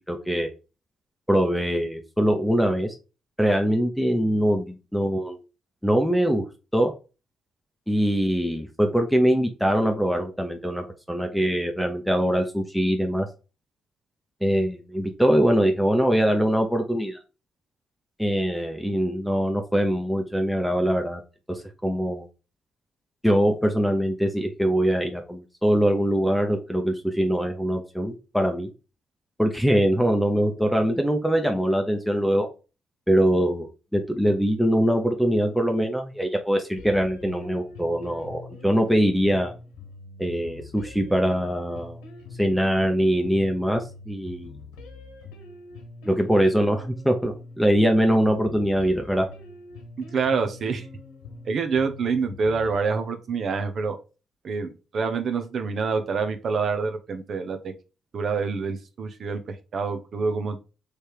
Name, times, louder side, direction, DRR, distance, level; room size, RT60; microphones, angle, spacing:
voice 1, 0.1-0.5 1.3-2.9 3.4-5.4 5.8-6.4 6.7-6.9 7.9-13.3 14.4-17.2 18.2-21.2 21.5-22.3 23.2-28.7 29.4-32.5 33.1-33.7 33.9-39.5 40.2-42.0 42.4-44.5 46.1-49.3, equal, ahead, 3 dB, 0.8 m, -23 dB
sound 1, 36.8-52.8, left 3 dB, 85° left, 1.1 m, -44 dB
voice 2, 50.0-50.9 51.4-53.9 54.4-57.7 58.1-60.6, right 5 dB, 60° right, 7 dB, 0.8 m, -27 dB
3.4 x 3.2 x 4.4 m, 0.32 s
hypercardioid pair, 50°, 0 cm